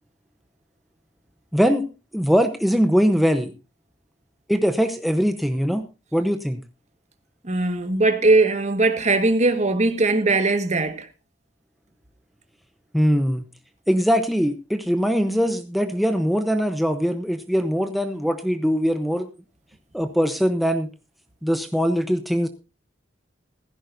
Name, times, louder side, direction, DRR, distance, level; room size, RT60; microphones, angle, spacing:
voice 1, 1.5-1.8 2.1-3.5 4.5-5.8 6.1-6.6 12.9-13.4 13.9-19.3 19.9-20.9 21.4-22.5, equal, ahead, 0.8 m, -21 dB
voice 2, 7.4-11.1, right 2 dB, 40° right, 1.6 m, -20 dB
16.5 x 15.0 x 2.6 m
head